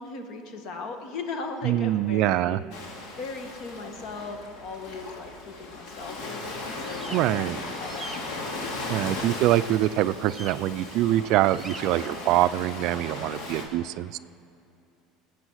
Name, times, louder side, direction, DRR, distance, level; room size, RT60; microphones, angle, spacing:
voice 1, 0.0-2.6 3.1-9.2, left 4 dB, 60° left, 5 dB, 1.7 m, -38 dB
voice 2, 1.6-2.6 7.1-7.6 8.9-14.2, right 14 dB, 60° right, 15 dB, 0.4 m, -24 dB
Ocean, 2.7-13.6, left 2 dB, 75° left, 2.5 m, -37 dB
sound 1, 6.8-7.2 7.8-8.2 10.3-10.6 11.5-11.8, right 2 dB, 10° right, 0.9 m, -41 dB
19.0 x 8.2 x 6.4 m, 2.5 s
supercardioid pair, 130°, 0 cm